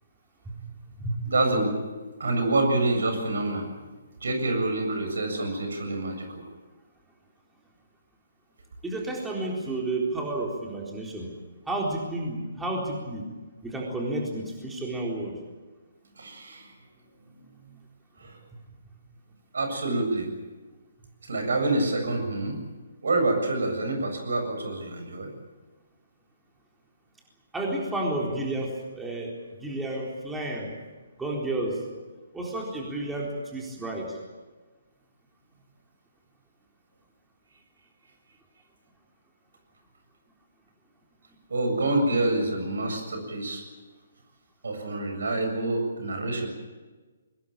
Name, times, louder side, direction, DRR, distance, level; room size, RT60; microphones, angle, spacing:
voice 1, 1.2-1.7 2.2-3.7 4.2-6.4 16.2-16.7 17.2-17.8 18.2-18.4 19.5-20.3 21.3-22.6 23.0-25.3 41.5-43.6 44.6-46.5, right 2 dB, 65° right, 5 dB, 7.5 m, -27 dB
voice 2, 8.8-11.3 11.7-13.3 13.6-15.4 18.5-18.6 27.5-30.7 31.2-31.8 32.3-34.2, right 2 dB, 5° right, -2 dB, 4.0 m, -31 dB
23.0 x 20.5 x 8.8 m, 1.3 s
figure-of-eight pair, 135°, 0 cm